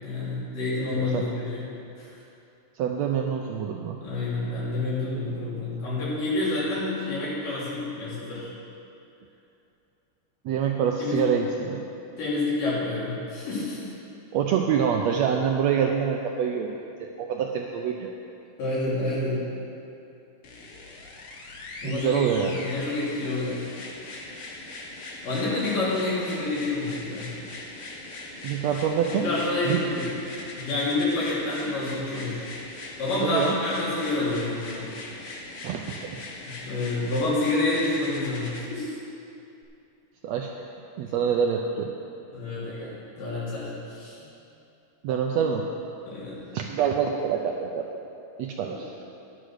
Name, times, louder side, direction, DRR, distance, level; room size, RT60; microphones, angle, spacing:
voice 1, 0.0-1.6 2.0-2.1 4.0-8.5 11.0-11.2 12.2-13.8 18.6-19.4 21.8-23.6 25.2-27.3 29.1-32.4 33.0-34.9 36.6-39.0 42.3-44.2 46.0-46.4 48.6-48.8, left 2 dB, 85° left, -8 dB, 4.7 m, -28 dB
voice 2, 0.9-1.3 2.7-4.0 10.4-11.9 14.3-18.1 21.8-22.6 28.4-29.3 29.6-29.8 33.2-33.5 35.6-36.2 40.2-40.5 41.0-41.9 45.0-45.7 46.5-47.8 48.4-48.9, right 7 dB, 85° right, 2 dB, 1.5 m, -26 dB
sound 1, 20.4-38.7 39.6-39.7, left 2 dB, 60° left, 1.5 m, -40 dB
11.0 x 8.4 x 6.4 m, 2.7 s
omnidirectional pair, 3.8 m